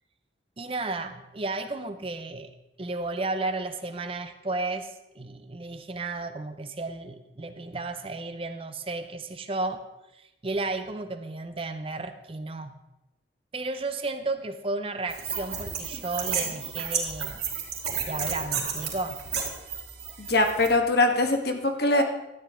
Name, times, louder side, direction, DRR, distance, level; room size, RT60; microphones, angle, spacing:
voice 1, 0.6-9.8 10.1-12.8 13.5-17.4 18.1-19.2, right 2 dB, 30° right, 8 dB, 0.6 m, -33 dB
sound 1, 15.1-20.7, right 7 dB, 55° right, 3.0 m, -32 dB
voice 2, 20.2-22.0, left 2 dB, 55° left, 4 dB, 1.3 m, -22 dB
13.0 x 9.6 x 3.7 m, 0.94 s
head